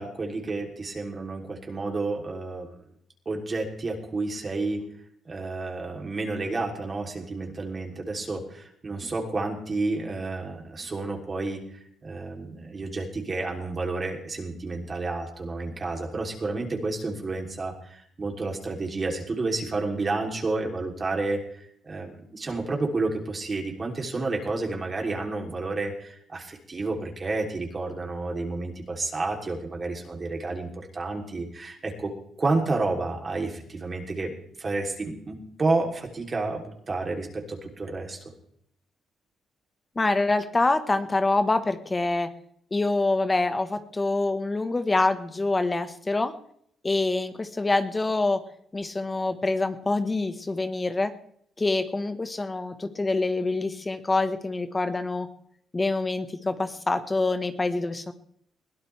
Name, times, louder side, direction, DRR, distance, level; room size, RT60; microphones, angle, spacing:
voice 1, 0.0-2.7 3.2-4.8 5.2-32.1 32.4-38.2, right 3 dB, 35° right, 2 dB, 3.2 m, -30 dB
voice 2, 39.9-42.3 42.7-46.3 46.8-48.4 48.7-51.1 51.6-55.3 55.7-58.1, left 2 dB, 20° left, 8 dB, 1.3 m, -26 dB
21.5 x 16.0 x 3.4 m, 0.67 s
cardioid pair, 90°, 0 cm